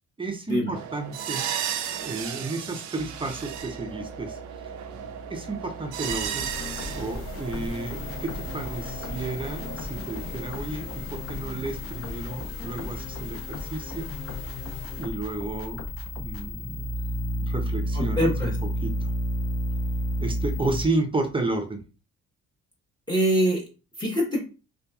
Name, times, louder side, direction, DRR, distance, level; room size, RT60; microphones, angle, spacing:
voice 1, 0.2-1.5 2.0-4.4 5.3-6.5 6.9-14.1 14.9-15.8 16.2-16.9 17.4-18.5 18.8-19.1 20.2-21.8, right 2 dB, 15° right, 5 dB, 0.5 m, -32 dB
sound 1, 0.7-11.7, right 9 dB, 70° right, 0.5 m, -36 dB
sound 2, 3.0-20.8, equal, 85° left, 0.7 m, -34 dB
sound 3, 6.0-16.5, left 3 dB, 50° left, 0.7 m, -37 dB
voice 2, 17.9-18.5 23.1-23.6 24.0-24.5, equal, 15° left, -2 dB, 0.9 m, -24 dB
2.8 x 2.3 x 2.2 m, 0.33 s
cardioid pair, 90°, 30 cm